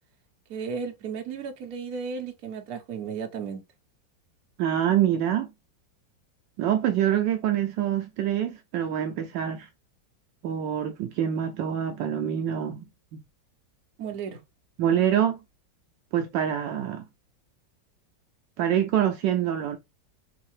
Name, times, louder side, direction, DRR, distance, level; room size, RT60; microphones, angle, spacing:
voice 1, 0.5-3.6 14.0-14.4, right 6 dB, 60° right, 1.3 m, -34 dB
voice 2, 4.6-5.5 6.6-9.7 10.4-13.2 14.8-15.4 16.1-17.1 18.6-19.8, right 10 dB, 75° right, 1.2 m, -25 dB
4.5 x 2.7 x 3.2 m
omnidirectional pair, 2.0 m